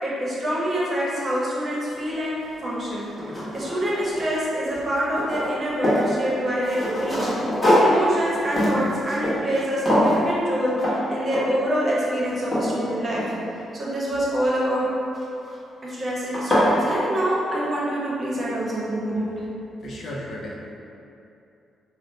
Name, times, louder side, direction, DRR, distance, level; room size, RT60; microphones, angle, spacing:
voice 1, 0.0-3.1 3.5-7.3 7.8-13.2 13.7-14.9 15.8-19.3, equal, 35° right, -6 dB, 0.8 m, -26 dB
sound 1, 2.4-2.5 3.0-4.4 4.7-6.1 6.6-9.6 9.9-10.2 10.8-11.0 11.3-11.7 12.1-13.7 15.1-15.5 16.0-16.1 16.3-16.7, equal, 20° left, 1.1 m, -23 dB
voice 2, 19.8-20.5, left 1 dB, 60° left, -3 dB, 0.5 m, -34 dB
2.7 x 2.1 x 3.8 m, 2.7 s
cardioid pair, 85°, 0 cm